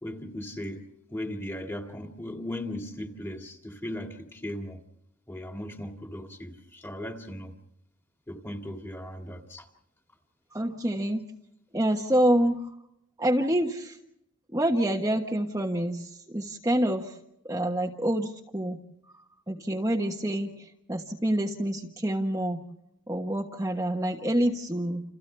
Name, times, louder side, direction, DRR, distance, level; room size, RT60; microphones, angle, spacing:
voice 1, 0.0-4.8 5.3-7.5 8.3-9.7, left 1 dB, 10° left, 2.3 m, -37 dB
voice 2, 10.5-11.3 11.7-12.7 13.2-14.0 14.5-17.2 17.4-18.8 19.5-22.6 23.1-25.0, right 1 dB, 15° right, 1.3 m, -27 dB
30.0 x 28.5 x 3.4 m
head